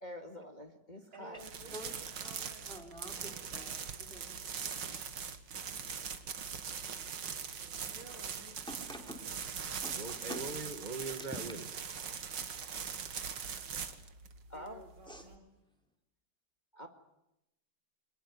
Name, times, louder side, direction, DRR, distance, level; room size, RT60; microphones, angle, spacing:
voice 1, 0.0-1.5 14.5-14.8 16.7-16.9, equal, 25° left, 5 dB, 1.9 m, -46 dB
voice 2, 1.1-4.7 7.5-9.0 14.5-15.5, right 1 dB, 85° right, 3 dB, 4.8 m, -56 dB
sound 1, 1.4-15.4, right 6 dB, 60° right, 2.2 m, -41 dB
voice 3, 2.7-3.2 3.5-3.7 4.0-4.3 8.7-9.2 9.8-10.4 11.9-13.1 15.1-15.2, equal, ahead, 3 dB, 3.6 m, -48 dB
voice 4, 9.9-11.6, right 3 dB, 30° right, 7 dB, 1.1 m, -41 dB
25.0 x 20.0 x 9.5 m, 0.88 s
omnidirectional pair, 2.2 m